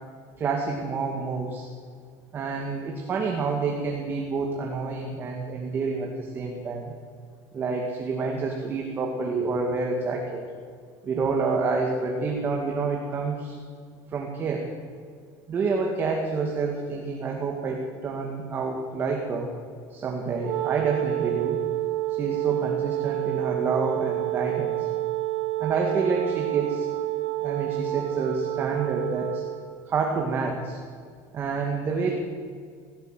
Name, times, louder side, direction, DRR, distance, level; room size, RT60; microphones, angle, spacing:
voice 1, 0.4-1.7 2.3-6.9 7.5-10.4 11.0-13.6 14.1-14.7 15.5-19.5 19.9-21.6 22.1-24.9 25.6-26.9 27.4-29.4 29.9-30.8 31.3-32.1, right 4 dB, 25° right, 1 dB, 2.4 m, -28 dB
Wind instrument woodwind instrument, 20.4-29.6, right 15 dB, 65° right, 4.0 m, -29 dB
18.0 x 17.5 x 9.2 m, 2.1 s
cardioid pair, 160°, 8 cm